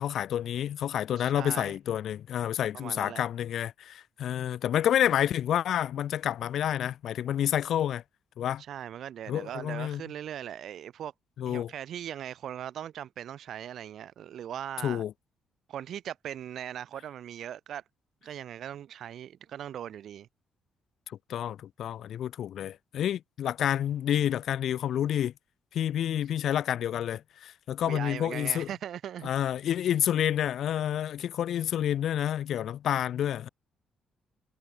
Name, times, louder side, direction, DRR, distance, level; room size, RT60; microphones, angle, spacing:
voice 1, 0.0-8.0 8.4-8.6 9.3-10.0 11.4-11.7 14.8-15.1 21.1-25.3 25.7-28.7 29.2-33.5, left 10 dB, 70° left, 0.7 m, -29 dB
voice 2, 1.2-1.8 2.7-3.2 8.7-11.1 11.5-15.0 15.7-17.8 18.2-20.3 27.8-29.3, right 10 dB, 70° right, 1.9 m, -39 dB
cardioid pair, 90°, 0 cm